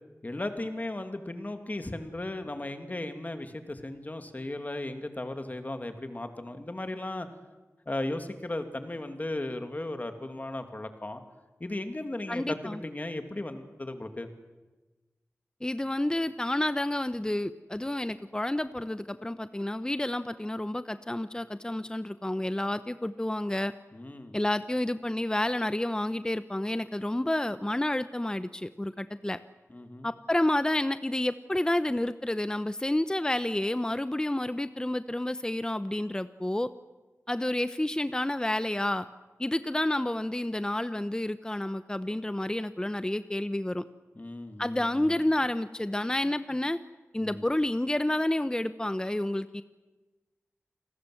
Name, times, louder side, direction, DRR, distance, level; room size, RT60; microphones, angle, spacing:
voice 1, 0.2-7.3 7.9-11.2 11.6-14.3 23.9-24.4 29.7-30.1 44.2-45.1 47.2-47.4, left 1 dB, 35° left, 7 dB, 2.6 m, -36 dB
voice 2, 12.3-12.8 15.6-23.7 24.3-29.4 30.0-36.7 37.3-39.1 39.4-43.8 44.6-46.8 47.1-49.6, left 1 dB, 15° left, 12 dB, 0.8 m, -30 dB
28.5 x 20.5 x 7.9 m, 1.2 s
wide cardioid pair, 70°, 5 cm